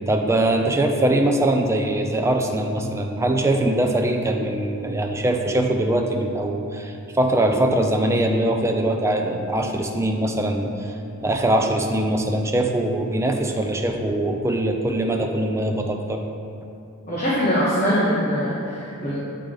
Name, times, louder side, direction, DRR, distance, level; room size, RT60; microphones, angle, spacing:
voice 1, 0.1-16.2, right 1 dB, 10° right, 3 dB, 0.4 m, -22 dB
voice 2, 17.1-19.2, equal, 35° left, -9 dB, 1.1 m, -22 dB
8.8 x 3.7 x 3.4 m, 2.6 s
head